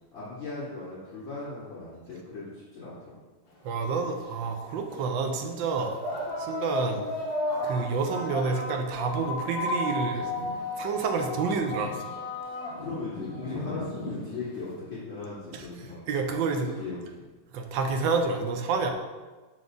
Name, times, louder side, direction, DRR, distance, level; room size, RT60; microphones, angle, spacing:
voice 1, 0.1-3.2 12.8-16.0 16.5-17.2, left 3 dB, 75° left, -13 dB, 3.3 m, -38 dB
voice 2, 3.6-5.9 6.4-7.0 7.6-10.3 10.8-12.0 15.5-15.6 16.1-16.7 17.5-18.9, right 4 dB, 70° right, 4 dB, 1.4 m, -28 dB
sound 1, 3.7-3.8 4.7-4.9 5.8-14.7, left 1 dB, 50° left, 1.9 m, -33 dB
6.0 x 5.6 x 3.9 m, 1.3 s
omnidirectional pair, 2.3 m